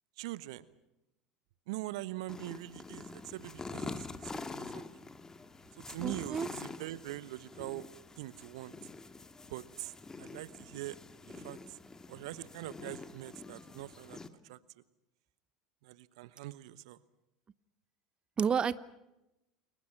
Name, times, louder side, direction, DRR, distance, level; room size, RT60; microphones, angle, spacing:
voice 1, 0.2-0.6 1.7-4.8 5.8-7.8 8.2-8.7 9.5-9.9 10.2-11.0 11.3-11.8 12.1-14.2 14.4-14.6 15.8-17.0, right 17 dB, 70° right, 16 dB, 1.2 m, -43 dB
sound 1, 2.3-14.3, left 3 dB, 15° left, 2.0 m, -46 dB
voice 2, 6.0-6.5 18.4-18.7, right 7 dB, 30° right, 17 dB, 1.0 m, -30 dB
29.5 x 23.0 x 6.0 m, 0.90 s
hypercardioid pair, 80°, 3 cm